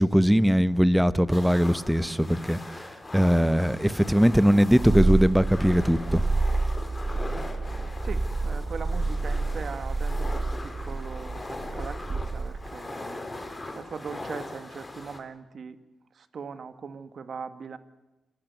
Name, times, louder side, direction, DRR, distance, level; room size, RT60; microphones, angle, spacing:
voice 1, 0.0-2.9 3.1-6.2, equal, 5° right, 15 dB, 1.0 m, -21 dB
sound 1, 1.3-15.2, left 2 dB, 25° left, 4.0 m, -40 dB
Purr, 4.7-12.8, right 3 dB, 40° right, 1.3 m, -28 dB
voice 2, 8.0-15.8 16.2-17.8, right 5 dB, 65° right, 11 dB, 1.7 m, -40 dB
27.5 x 15.5 x 9.3 m, 1.0 s
cardioid pair, 65°, 0 cm